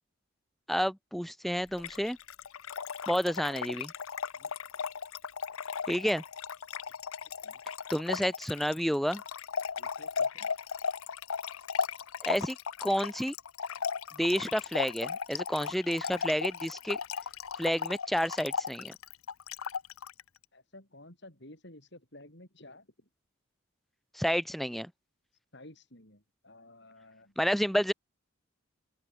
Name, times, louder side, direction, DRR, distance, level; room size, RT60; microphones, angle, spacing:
voice 1, 0.7-2.2 3.1-3.9 5.9-6.2 7.9-9.2 12.2-13.3 14.2-17.0 17.6-19.0 24.1-24.9 27.4-27.9, equal, ahead, 0.9 m, -30 dB
Trickle dribble / Fill (with liquid), 1.7-20.2, left 6 dB, 80° left, 0.8 m, -36 dB
voice 2, 9.8-10.5 20.5-22.9 25.5-27.3, left 1 dB, 55° left, 7.5 m, -53 dB
open air
head